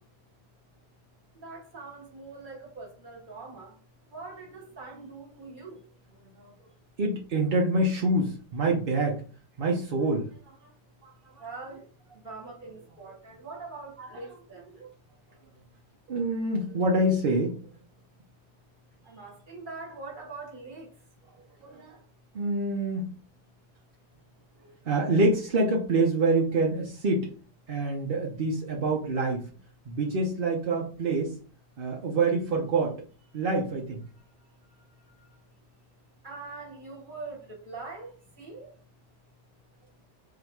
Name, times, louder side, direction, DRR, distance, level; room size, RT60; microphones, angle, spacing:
voice 1, 1.3-3.8 4.1-5.8 11.4-11.8 12.1-14.7 19.0-20.9 34.1-34.2 34.8-35.4 36.2-38.7, right 3 dB, 30° right, 1.4 m, -43 dB
voice 2, 7.0-9.2 9.6-10.7 11.0-11.4 14.0-14.1 14.7-14.9 16.1-17.6 21.6-22.0 22.3-23.1 24.6-27.3 27.7-29.5 29.9-31.3 31.8-33.0 33.3-34.0, right 2 dB, 45° right, 0.7 m, -26 dB
4.1 x 2.9 x 4.6 m
omnidirectional pair, 1.8 m